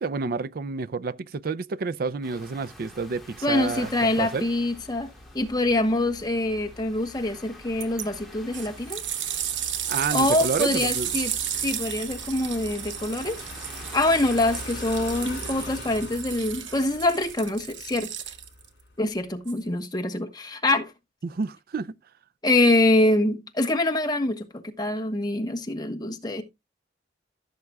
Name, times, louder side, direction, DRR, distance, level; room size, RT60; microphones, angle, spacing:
voice 1, 0.0-4.4 9.9-11.1 21.2-21.9, right 4 dB, 50° right, 0.4 m, -29 dB
sound 1, 2.2-16.0, left 1 dB, ahead, 2.1 m, -48 dB
sound 2, 2.8-18.9, left 2 dB, 60° left, 4.1 m, -44 dB
voice 2, 3.4-5.1 5.3-9.0 10.1-11.3 11.6-13.4 13.9-18.1 19.0-20.9 22.4-26.4, left 2 dB, 20° left, 1.1 m, -25 dB
sound 3, 7.8-8.1 8.5-18.7 19.5-19.6, right 10 dB, 75° right, 1.0 m, -33 dB
15.5 x 6.6 x 2.3 m
head